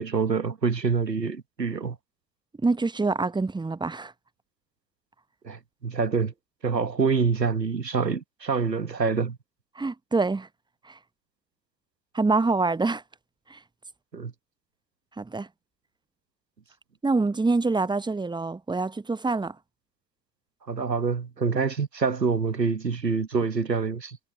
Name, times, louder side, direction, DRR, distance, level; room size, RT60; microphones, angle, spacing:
voice 1, 0.0-2.0 5.4-6.3 6.6-9.4 14.1-14.3 20.7-24.2, right 5 dB, 90° right, 1.4 m, -26 dB
voice 2, 2.6-4.1 9.8-10.5 12.1-13.0 13.5-13.6 15.2-15.5 17.0-19.5, right 3 dB, 10° right, 0.8 m, -25 dB
figure-of-eight pair, 50°, 48 cm